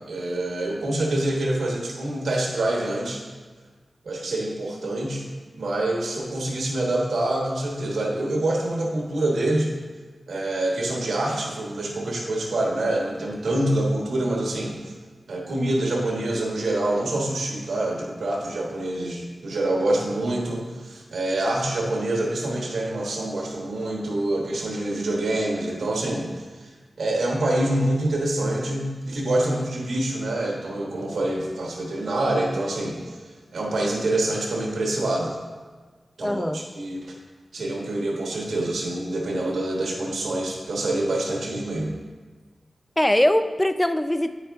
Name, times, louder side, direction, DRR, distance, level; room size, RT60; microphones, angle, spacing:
voice 1, 0.1-3.2 4.0-5.3 5.6-9.7 10.3-14.9 15.3-26.7 27.0-33.2 33.5-35.4 36.2-37.1 37.5-41.9, right 1 dB, 90° right, -2 dB, 1.2 m, -26 dB
voice 2, 36.2-36.6 43.0-44.3, left 1 dB, 10° left, 10 dB, 0.4 m, -21 dB
8.9 x 5.0 x 3.5 m, 1.4 s
cardioid pair, 55°, 0 cm